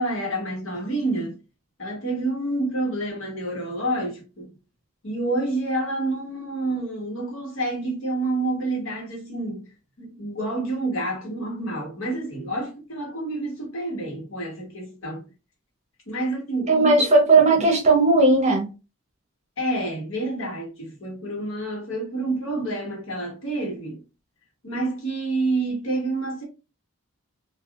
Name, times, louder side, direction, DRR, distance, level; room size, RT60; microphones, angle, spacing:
voice 1, 0.0-1.4 1.8-4.5 5.0-9.7 10.0-15.2 16.1-17.1 17.6-17.7 19.6-24.0 24.6-26.4, right 2 dB, 70° left, 1.3 m, -28 dB
voice 2, 16.7-18.7, right 3 dB, 30° right, 0.7 m, -17 dB
3.3 x 2.4 x 2.5 m
head